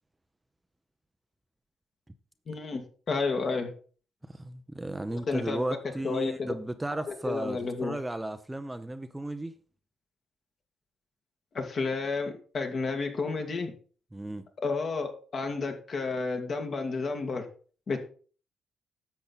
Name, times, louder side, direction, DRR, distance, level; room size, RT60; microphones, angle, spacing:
voice 1, 2.5-3.7 5.3-5.6 6.0-6.5 7.1-8.0 11.5-13.7 14.6-17.5 17.9-18.0, left 4 dB, 50° left, 2.1 m, -31 dB
voice 2, 4.3-9.5 14.1-14.4, right 1 dB, 10° right, 0.7 m, -35 dB
10.5 x 7.0 x 4.1 m
cardioid pair, 90°, 0 cm